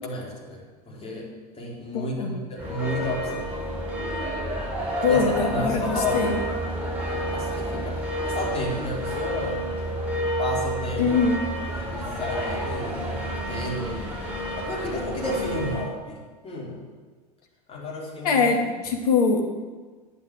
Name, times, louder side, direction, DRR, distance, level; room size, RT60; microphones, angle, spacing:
voice 1, 0.0-3.5 5.1-5.2 5.5-6.3 7.0-9.6 10.4-11.2 11.7-14.1 14.6-16.8 17.7-18.4, left 2 dB, 30° left, -3 dB, 4.5 m, -32 dB
voice 2, 1.9-2.4 5.0-6.4 11.0-11.4 18.2-19.4, left 5 dB, 65° left, 3 dB, 2.3 m, -23 dB
sound 1, 2.6-15.9, right 1 dB, 5° right, 4.8 m, -30 dB
10.5 x 8.2 x 9.3 m, 1.4 s
figure-of-eight pair, 80°, 21 cm